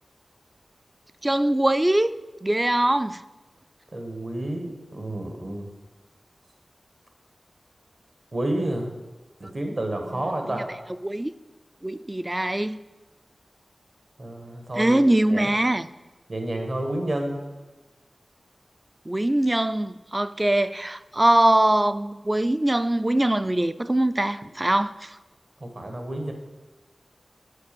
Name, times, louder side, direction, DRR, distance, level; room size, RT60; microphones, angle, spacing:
voice 1, 1.2-2.1 2.4-3.2 11.0-11.3 11.8-12.8 14.8-15.9 19.1-25.2, right 1 dB, 20° right, 13 dB, 0.3 m, -22 dB
voice 2, 3.9-5.7 8.3-8.9 9.4-10.7 14.2-15.0 15.3-15.5 16.3-17.4 25.6-26.3, right 1 dB, 50° right, 4 dB, 1.3 m, -30 dB
8.2 x 5.1 x 6.8 m, 1.2 s
wide cardioid pair, 75°, 0 cm